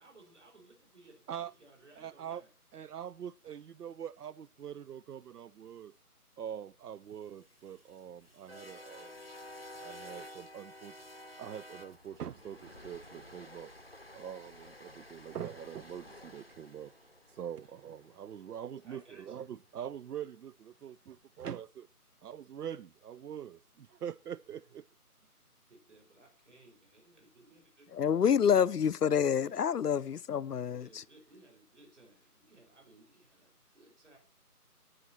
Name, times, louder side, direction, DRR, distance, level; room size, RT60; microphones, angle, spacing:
voice 1, 0.0-2.5 11.0-11.1 17.6-17.7 18.8-19.4 25.7-27.9 29.3-29.5 30.7-34.2, right 2 dB, 50° right, 5.2 m, -60 dB
voice 2, 2.0-2.4 2.7-5.9 6.4-9.1 9.8-10.9 11.4-13.7 14.1-16.9 17.3-21.9 22.2-24.8, right 9 dB, 80° right, 0.5 m, -43 dB
sound 1, 7.2-19.4, left 1 dB, 40° left, 0.6 m, -52 dB
voice 3, 27.9-30.9, left 8 dB, 80° left, 0.6 m, -27 dB
17.0 x 6.4 x 4.3 m
figure-of-eight pair, 175°, 46 cm